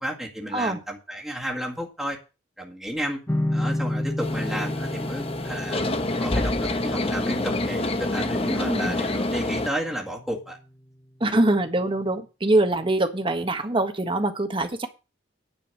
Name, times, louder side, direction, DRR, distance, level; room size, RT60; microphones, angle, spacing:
voice 1, 0.0-2.2 2.6-3.2 3.5-5.8 6.2-10.6, equal, ahead, 2.0 m, -32 dB
sound 1, 3.3-10.5, left 1 dB, 15° left, 0.8 m, -32 dB
sound 2, 4.2-9.7, left 2 dB, 35° left, 1.1 m, -27 dB
voice 2, 8.5-9.0 11.2-14.9, right 2 dB, 30° right, 1.5 m, -24 dB
10.0 x 5.4 x 7.8 m
head